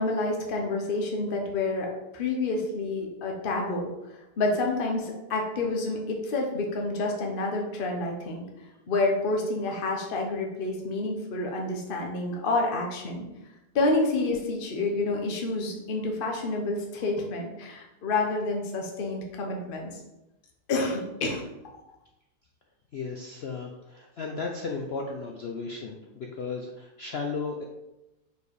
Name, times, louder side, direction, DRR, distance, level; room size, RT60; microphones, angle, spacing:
voice 1, 0.0-1.9 2.1-3.9 4.4-8.4 8.9-13.3 13.7-19.9 20.7-21.4, left 2 dB, 35° left, 0 dB, 1.1 m, -28 dB
voice 2, 22.9-27.6, left 4 dB, 75° left, 1 dB, 0.5 m, -35 dB
5.3 x 4.6 x 4.7 m, 0.97 s
omnidirectional pair, 1.8 m